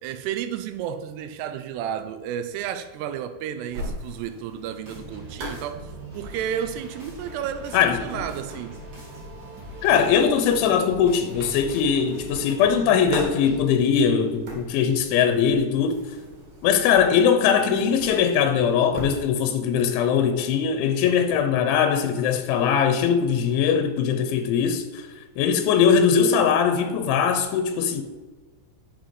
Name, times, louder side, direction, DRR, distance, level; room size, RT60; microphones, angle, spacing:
voice 1, 0.0-8.8, right 9 dB, 80° right, 2.5 m, -32 dB
sound 1, 3.7-19.3, right 1 dB, 50° right, 3.4 m, -41 dB
sound 2, 4.8-13.7, right 1 dB, 35° right, 2.5 m, -41 dB
voice 2, 9.8-16.0 16.6-25.0 25.4-28.0, left 7 dB, 90° left, 3.2 m, -21 dB
9.1 x 7.1 x 5.2 m
omnidirectional pair, 5.2 m